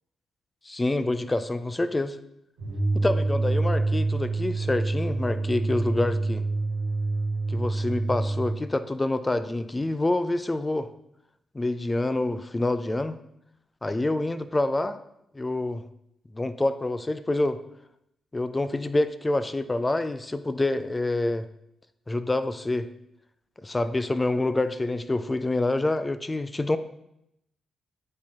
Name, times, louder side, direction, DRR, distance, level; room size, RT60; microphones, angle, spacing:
voice 1, 0.6-2.2 2.9-6.4 7.5-10.9 11.5-13.2 13.8-15.0 15.3-15.8 16.3-17.6 18.3-21.5 22.1-22.9 23.6-26.8, left 2 dB, 25° left, 12 dB, 0.5 m, -27 dB
sound 1, 2.6-8.6, right 3 dB, 90° right, 1.8 m, -27 dB
11.0 x 4.3 x 2.9 m, 0.80 s
hypercardioid pair, 40°, 0 cm